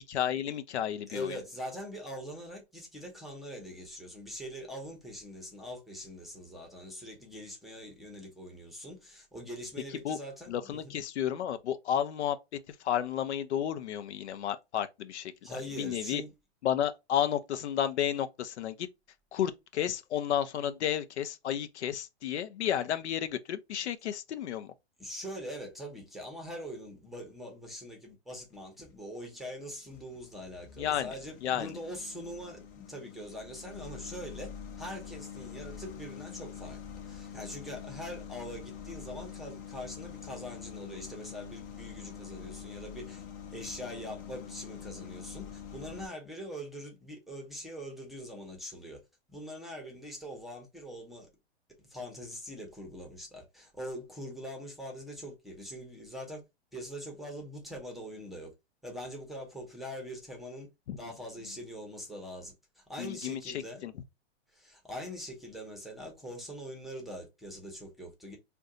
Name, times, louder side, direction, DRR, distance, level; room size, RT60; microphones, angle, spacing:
voice 1, 0.1-1.4 10.0-10.2 10.5-12.4 12.7-16.2 16.6-18.9 19.3-24.7 30.8-31.1 31.4-31.7 60.9-61.0 63.0-63.9, left 10 dB, 90° left, 0.6 m, -32 dB
voice 2, 1.1-11.0 15.4-16.3 25.0-34.5 34.8-36.8 37.1-43.2 43.5-49.0 49.3-51.3 51.9-56.4 56.7-58.5 58.8-60.7 61.0-63.8 64.5-68.4, equal, ahead, 0.7 m, -43 dB
sound 1, 28.3-28.9 29.5-46.1, left 7 dB, 30° left, 0.5 m, -45 dB
2.5 x 2.2 x 3.7 m
hypercardioid pair, 140°, 33 cm